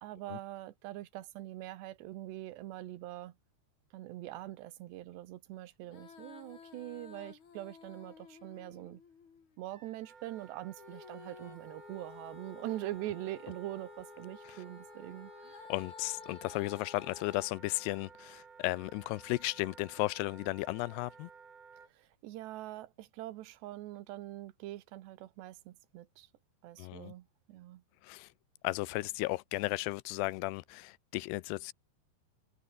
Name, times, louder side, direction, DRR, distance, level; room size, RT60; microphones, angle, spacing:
voice 1, 0.0-3.3 3.9-9.0 9.6-15.7 21.9-26.3 26.6-27.8, right 15 dB, 85° right, 3.4 m, -43 dB
Female singing, 5.8-9.6 10.8-17.5, left 6 dB, 45° left, 4.5 m, -53 dB
Wind instrument woodwind instrument, 9.7-21.9, right 5 dB, 50° right, 5.5 m, -56 dB
voice 2, 15.7-21.3 26.8-27.1 28.0-28.3 28.6-31.7, left 20 dB, 85° left, 2.6 m, -35 dB
omnidirectional pair, 4.8 m